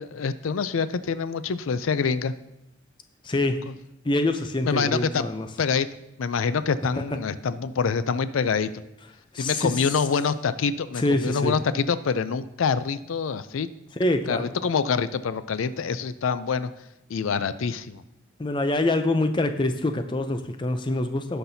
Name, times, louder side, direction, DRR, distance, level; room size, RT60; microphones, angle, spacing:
voice 1, 0.0-2.3 4.6-5.3 5.6-5.9 6.2-8.7 9.4-13.7 14.3-16.7 17.1-18.0, left 5 dB, 85° left, 14 dB, 0.4 m, -26 dB
voice 2, 3.2-3.6 4.0-5.5 9.3-9.7 11.0-11.6 14.0-14.5 18.4-21.4, left 2 dB, 25° left, 8 dB, 0.5 m, -25 dB
17.0 x 5.9 x 2.7 m, 0.85 s
head